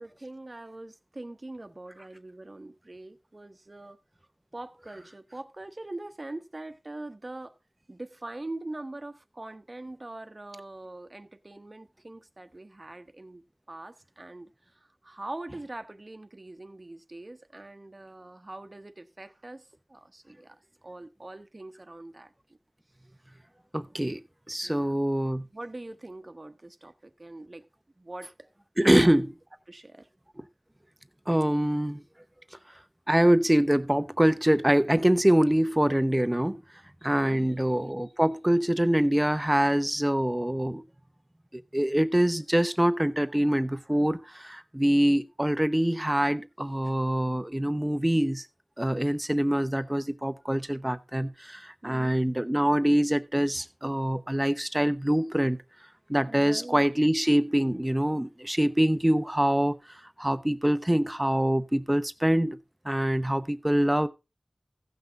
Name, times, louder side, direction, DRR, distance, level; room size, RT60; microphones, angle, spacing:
voice 1, 0.0-4.0 4.5-7.6 7.9-20.6 20.8-22.3 24.6-25.0 25.5-27.7 28.0-28.5 28.8-29.2 29.7-30.1 37.2-37.6 51.8-52.2 56.3-56.8, right 2 dB, 45° right, 1.0 m, -43 dB
voice 2, 23.7-24.2 24.5-25.5 28.8-29.3 31.3-32.0 33.1-36.6 37.0-40.8 41.5-48.5 48.8-55.6 56.1-59.8 60.2-62.6 62.8-64.1, right 1 dB, 15° right, 0.8 m, -24 dB
15.5 x 6.0 x 3.9 m
wide cardioid pair, 55°, 0 cm